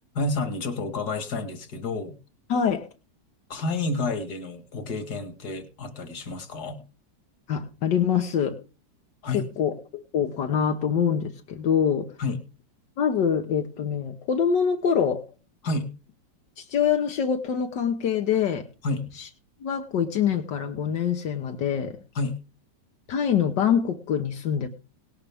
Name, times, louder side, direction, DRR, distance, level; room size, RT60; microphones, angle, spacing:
voice 1, 0.1-2.1 3.5-6.8 9.2-9.5 12.2-12.4 15.6-15.9 18.8-19.2 22.2-22.4, left 3 dB, 65° left, 10 dB, 2.2 m, -30 dB
voice 2, 2.5-2.9 7.5-8.6 9.3-12.1 13.0-15.2 16.6-18.6 19.2-19.3 19.6-22.0 23.1-24.7, left 7 dB, 80° left, 4 dB, 1.7 m, -25 dB
18.0 x 11.5 x 3.5 m, 0.34 s
omnidirectional pair, 1.9 m